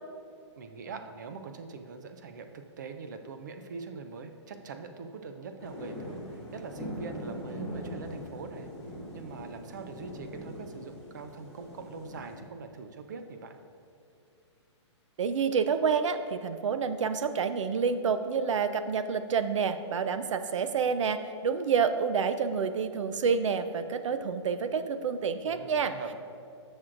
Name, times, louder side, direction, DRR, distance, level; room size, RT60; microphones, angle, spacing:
voice 1, 0.6-8.7 9.1-13.6 25.4-26.1, right 4 dB, 40° right, 7 dB, 0.5 m, -43 dB
sound 1, 5.6-12.3, equal, 5° left, 1.8 m, -42 dB
voice 2, 15.2-25.9, right 6 dB, 90° right, 11 dB, 0.5 m, -28 dB
13.0 x 6.2 x 2.5 m, 2.5 s
hypercardioid pair, 180°, 15 cm